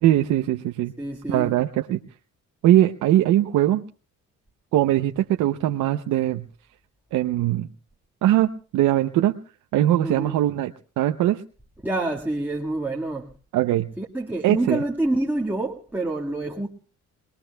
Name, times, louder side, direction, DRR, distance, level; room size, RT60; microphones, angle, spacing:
voice 1, 0.0-0.9 1.3-2.0 2.6-3.8 4.7-6.5 7.1-7.7 8.2-9.3 9.7-11.4 13.5-13.9 14.4-14.8, right 13 dB, 85° right, 0.7 m, -21 dB
voice 2, 1.0-1.5 10.0-10.3 11.8-13.3 14.0-16.7, right 2 dB, 5° right, 1.7 m, -27 dB
29.0 x 20.0 x 2.3 m
cardioid pair, 90°, 30 cm